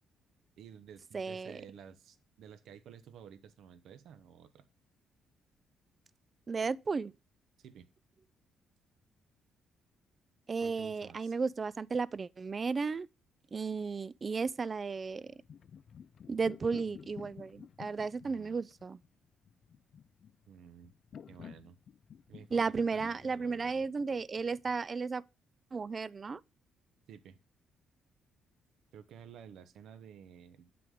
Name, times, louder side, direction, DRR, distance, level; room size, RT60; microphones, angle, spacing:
voice 1, 0.6-4.6 7.6-7.9 10.6-11.3 18.2-18.6 20.5-20.9 21.3-21.8 22.3-23.9 27.1-27.4 28.9-30.7, right 8 dB, 75° right, 0.9 m, -53 dB
voice 2, 1.1-1.6 6.5-7.1 10.5-13.1 13.5-15.3 16.3-19.0 22.5-25.2 25.7-26.4, right 4 dB, 35° right, 0.3 m, -34 dB
sound 1, 15.1-24.9, left 7 dB, 55° left, 0.3 m, -52 dB
7.8 x 5.9 x 3.5 m
cardioid pair, 90°, 0 cm